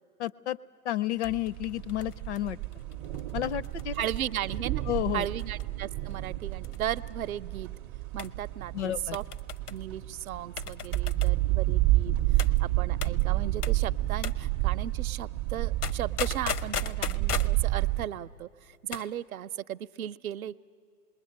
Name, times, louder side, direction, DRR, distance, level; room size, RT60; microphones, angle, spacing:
voice 1, 0.2-0.6 0.8-2.6 3.3-4.0 4.9-5.3 8.7-9.2, left 13 dB, 50° left, 20 dB, 0.5 m, -31 dB
sound 1, 1.2-4.6 5.4-5.8 6.1-6.2 6.6-7.0 8.2-8.4 9.1-9.8 10.6-11.4 12.4-12.6 13.0-13.2 13.6-13.9 14.2-14.5 15.8-17.6 18.7-19.1 19.4-19.5, left 8 dB, 80° left, 0.8 m, -37 dB
sound 2, 1.2-18.1, right 17 dB, 25° right, 0.5 m, -30 dB
voice 2, 3.9-4.8 5.1-7.7 8.1-9.2 9.7-20.6, right 11 dB, 65° right, 12 dB, 0.7 m, -36 dB
27.0 x 21.0 x 8.6 m, 2.4 s
hypercardioid pair, 120°, 46 cm